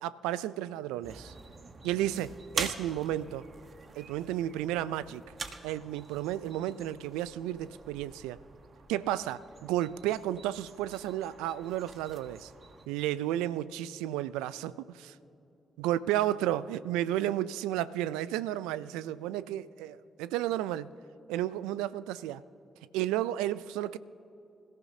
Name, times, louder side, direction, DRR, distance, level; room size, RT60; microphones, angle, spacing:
voice 1, 0.0-1.3 1.8-3.5 4.0-5.3 5.6-8.4 8.9-12.5 12.9-15.1 15.8-20.9 21.3-22.4 22.9-24.0, right 13 dB, 85° right, 17 dB, 0.4 m, -32 dB
sound 1, 1.0-12.9, right 4 dB, 50° right, 1.2 m, -44 dB
26.5 x 14.5 x 2.8 m, 2.8 s
hypercardioid pair, 40°, 0 cm